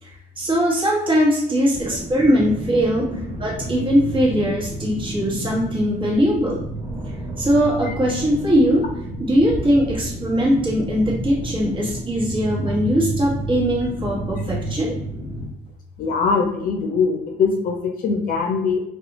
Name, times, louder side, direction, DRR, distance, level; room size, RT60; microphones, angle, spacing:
voice 1, 0.0-6.9 7.4-8.9 9.2-14.9, equal, 30° right, -4 dB, 1.2 m, -20 dB
sound 1, 1.7-15.5, right 1 dB, 15° right, 1.4 m, -31 dB
voice 2, 16.0-18.8, left 5 dB, 55° left, 2 dB, 0.6 m, -22 dB
2.5 x 2.3 x 2.9 m, 0.80 s
cardioid pair, 110°, 17 cm